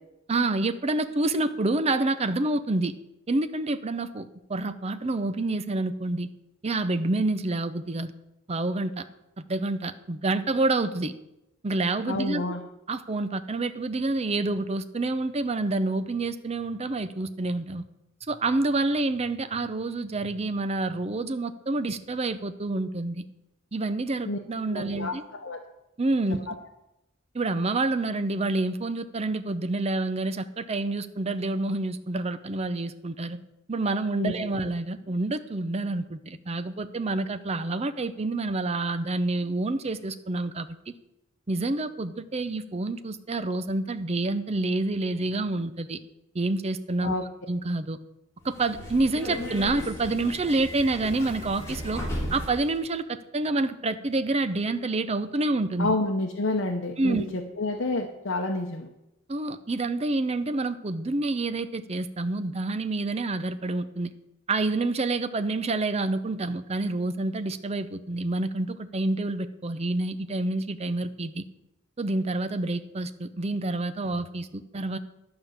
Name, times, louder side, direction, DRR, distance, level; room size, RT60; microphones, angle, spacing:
voice 1, 0.3-2.9 3.3-6.3 6.6-8.1 8.5-9.0 9.5-11.1 11.6-12.4 12.9-17.8 18.3-23.2 23.7-25.2 26.0-26.4 27.3-33.4 33.7-40.9 41.5-46.0 46.3-47.1 47.5-48.0 48.4-52.0 52.3-55.9 57.0-57.2 59.3-64.1 64.5-71.4 72.0-75.0, right 2 dB, 30° right, 12 dB, 0.6 m, -28 dB
voice 2, 12.1-12.6 24.3-24.4 24.7-25.1 25.4-25.6 26.5-26.6 34.2-34.3 47.0-47.2 55.8-58.9, left 2 dB, 65° left, 1 dB, 0.9 m, -29 dB
Subway metro underground, 48.4-52.7, equal, 15° left, 2.7 m, -35 dB
11.5 x 5.2 x 7.3 m, 0.90 s
head